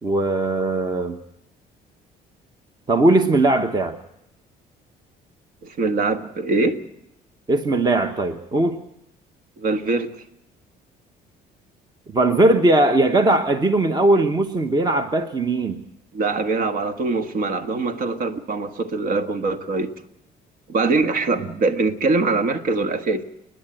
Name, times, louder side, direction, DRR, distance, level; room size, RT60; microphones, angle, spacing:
voice 1, 0.0-1.2 2.9-4.0 7.5-8.8 12.1-15.8, right 2 dB, 25° right, 8 dB, 1.0 m, -19 dB
voice 2, 5.6-6.8 9.6-10.1 16.1-19.9 20.7-23.2, right 3 dB, 60° right, 8 dB, 1.6 m, -23 dB
29.0 x 10.0 x 9.0 m, 0.83 s
cardioid pair, 110°, 17 cm